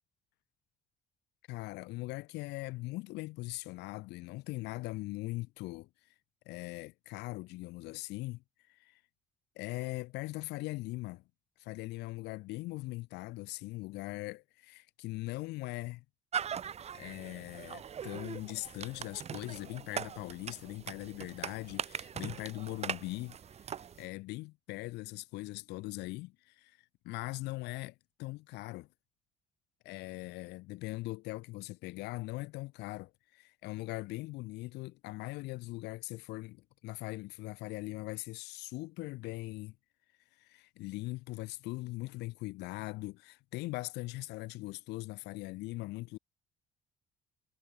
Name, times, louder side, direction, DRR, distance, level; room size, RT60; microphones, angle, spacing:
voice 1, 1.5-5.9 6.5-9.0 9.6-11.2 11.6-16.0 16.9-23.4 23.7-28.9 29.8-39.8 40.3-46.2, left 21 dB, 85° left, 0.9 m, -41 dB
sound 1, 16.3-24.1, right 8 dB, 40° right, 0.9 m, -41 dB
cardioid pair, 110°, 17 cm